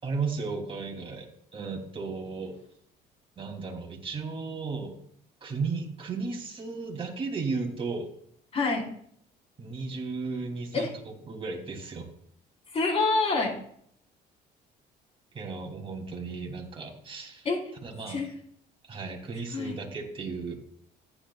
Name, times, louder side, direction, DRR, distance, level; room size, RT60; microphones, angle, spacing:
voice 1, 0.0-2.5 3.4-4.9 5.4-8.1 9.6-12.1 15.3-17.5 17.8-18.2 18.9-20.5, right 4 dB, 30° right, 1 dB, 3.1 m, -35 dB
voice 2, 8.5-8.9 10.7-10.9 12.7-13.6 17.4-17.6 18.1-18.3 19.5-19.8, left 3 dB, 35° left, -1 dB, 4.4 m, -26 dB
14.5 x 11.0 x 2.4 m, 0.63 s
cardioid pair, 110°, 17 cm